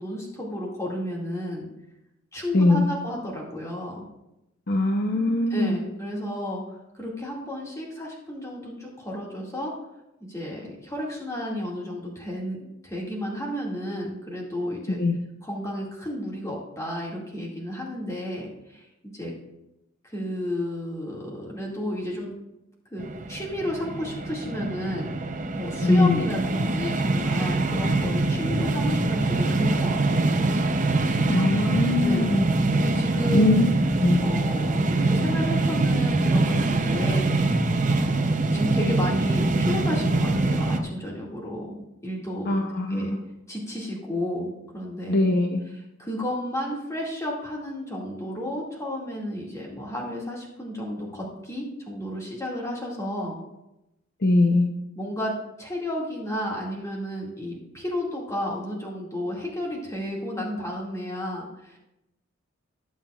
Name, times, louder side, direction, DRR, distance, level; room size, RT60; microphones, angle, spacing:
voice 1, 0.0-1.7 2.3-4.1 5.5-9.7 10.2-15.0 15.4-18.9 19.1-19.3 20.0-22.3 22.9-25.1 25.5-30.5 32.0-32.3 32.7-33.6 34.2-37.3 37.9-42.6 42.9-43.2 43.5-45.2 45.7-53.4 55.0-61.8, left 1 dB, 15° left, -3 dB, 2.1 m, -32 dB
voice 2, 2.5-2.9 4.7-5.8 15.0-15.2 25.8-26.2 31.3-32.4 33.3-33.7 34.0-34.2 42.5-43.2 45.1-45.6 54.2-54.7, left 2 dB, 50° left, 4 dB, 0.7 m, -21 dB
sound 1, 23.0-40.8, right 2 dB, 40° right, 0.6 m, -24 dB
18.5 x 7.4 x 2.4 m, 0.92 s
head